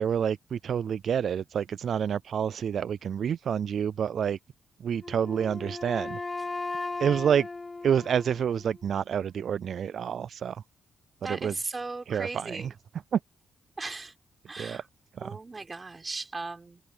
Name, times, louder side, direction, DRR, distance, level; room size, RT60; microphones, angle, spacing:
voice 1, 0.0-4.4 4.8-6.2 7.0-7.5 7.8-10.6 11.2-11.7 12.1-12.7 13.1-13.2 14.6-14.8 15.2-15.4, right 8 dB, 65° right, 0.3 m, -28 dB
Wind instrument woodwind instrument, 5.0-8.9, left 3 dB, 25° left, 2.6 m, -37 dB
voice 2, 11.2-12.7 13.8-14.1 14.5-14.8 15.2-16.8, right 3 dB, 30° right, 3.7 m, -37 dB
open air
cardioid pair, 75°, 0 cm